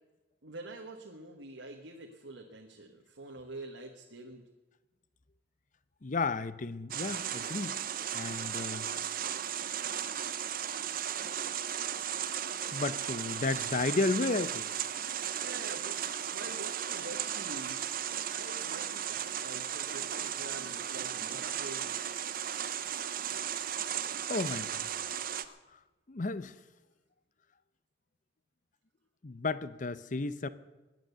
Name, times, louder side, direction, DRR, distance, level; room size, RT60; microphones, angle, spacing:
voice 1, 0.4-4.5 15.4-16.0 16.2-22.1, right 2 dB, 70° right, 1.4 m, -46 dB
voice 2, 6.0-7.8 8.1-9.0 12.7-14.6 24.3-24.9 25.4-25.5 26.1-26.5 29.2-30.5, left 3 dB, 40° left, 0.6 m, -33 dB
sound 1, 6.9-25.5, right 9 dB, 50° right, 0.7 m, -36 dB
21.5 x 9.2 x 6.9 m
head